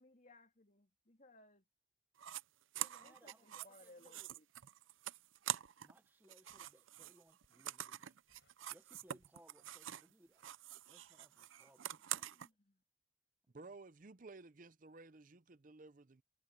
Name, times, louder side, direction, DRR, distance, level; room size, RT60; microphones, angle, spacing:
voice 1, 0.0-1.7 3.0-4.5 12.1-12.8, left 2 dB, 40° left, 3.3 m, -64 dB
sound 1, 2.2-2.4 2.7-6.0 6.2-10.1 10.4-12.5, right 12 dB, 85° right, 0.6 m, -45 dB
voice 2, 2.7-4.3 5.8-8.2 8.7-10.4 10.9-12.5, right 1 dB, 10° right, 0.8 m, -67 dB
Crackle, 3.7-4.7 5.2-5.8 6.5-6.9 7.3-7.7 8.0-10.0 10.2-10.5, left 2 dB, 65° left, 5.1 m, -79 dB
voice 3, 13.5-16.2, right 3 dB, 40° right, 0.6 m, -55 dB
head